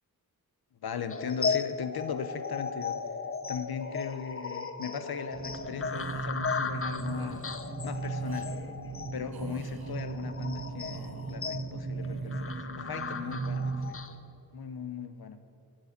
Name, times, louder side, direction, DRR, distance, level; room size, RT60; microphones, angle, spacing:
voice 1, 0.8-3.0 3.5-7.5 7.8-8.5 9.1-14.0 14.5-15.4, left 7 dB, 80° left, 10 dB, 0.8 m, -38 dB
sound 1, 1.1-14.1, left 5 dB, 35° left, 0.8 m, -36 dB
sound 2, 5.3-13.9, right 4 dB, 60° right, 1.4 m, -37 dB
sound 3, 5.8-6.3 7.0-7.4 8.1-8.5 9.3-9.9 10.6-11.4 11.9-12.6 13.0-13.4, right 5 dB, 75° right, 0.9 m, -48 dB
10.0 x 7.7 x 8.3 m, 2.6 s
cardioid pair, 50°, 37 cm